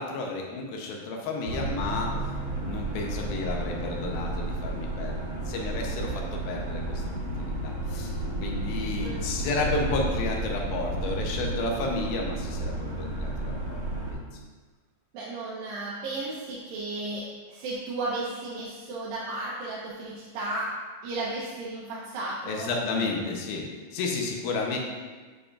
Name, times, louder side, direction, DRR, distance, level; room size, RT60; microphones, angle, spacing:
voice 1, 0.0-2.1 2.6-7.0 7.4-8.2 8.4-13.8 14.1-14.2 22.5-23.6 23.9-24.8, left 3 dB, 85° left, 0 dB, 2.7 m, -32 dB
sound 1, 1.5-14.1, right 2 dB, 60° right, 1.3 m, -32 dB
voice 2, 15.1-17.2 17.5-20.7 21.0-23.2, right 2 dB, 80° right, -8 dB, 2.6 m, -34 dB
8.3 x 5.0 x 2.5 m, 1.4 s
omnidirectional pair, 4.2 m